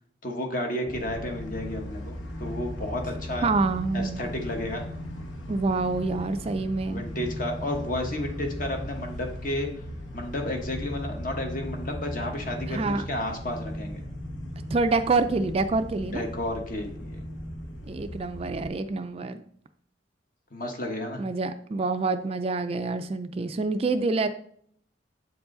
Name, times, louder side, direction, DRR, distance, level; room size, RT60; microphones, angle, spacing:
voice 1, 0.2-3.5 3.9-4.8 6.8-9.7 10.1-14.0 16.1-17.3 20.5-21.2 23.4-23.5, left 1 dB, 45° left, 3 dB, 1.2 m, -32 dB
sound 1, 0.9-18.7, equal, 75° left, 1.2 m, -37 dB
voice 2, 3.4-4.2 5.5-7.0 12.7-13.0 14.7-16.3 17.9-19.4 21.2-24.3, right 3 dB, 30° right, 9 dB, 0.3 m, -27 dB
8.2 x 4.7 x 3.8 m, 0.63 s
head